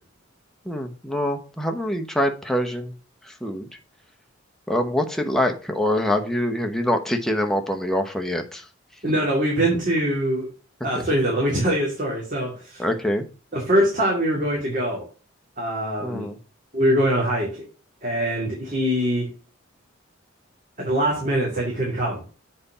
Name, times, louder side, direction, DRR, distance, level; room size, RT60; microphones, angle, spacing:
voice 1, 0.7-2.9 3.2-3.7 4.7-8.6 12.8-13.3 16.0-16.4, left 1 dB, ahead, 3 dB, 1.0 m, -25 dB
voice 2, 9.0-10.5 10.8-12.8 13.5-15.0 15.6-16.3 16.7-17.6 18.0-19.3 20.8-22.2, right 1 dB, 40° right, -3 dB, 2.5 m, -23 dB
7.7 x 4.3 x 6.6 m, 0.36 s
head